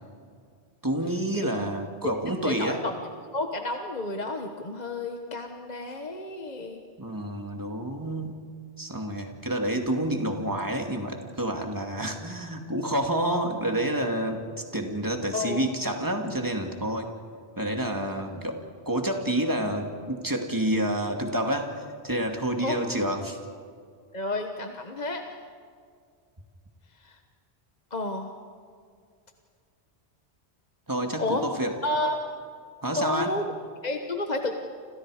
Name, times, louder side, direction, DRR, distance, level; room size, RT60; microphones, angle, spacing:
voice 1, 0.8-2.8 7.0-8.5 8.8-14.5 14.7-17.1 17.6-18.6 18.9-23.4 30.9-31.7 32.8-33.3, right 1 dB, 20° right, 3 dB, 2.4 m, -28 dB
voice 2, 2.4-2.9 3.3-6.8 15.3-15.7 22.6-22.9 24.1-25.2 27.0-27.2 27.9-28.3 31.2-31.5 31.8-32.3 33.0-33.4 33.8-34.6, left 2 dB, 40° left, 4 dB, 1.4 m, -31 dB
29.5 x 27.5 x 5.0 m, 2.2 s
omnidirectional pair, 1.1 m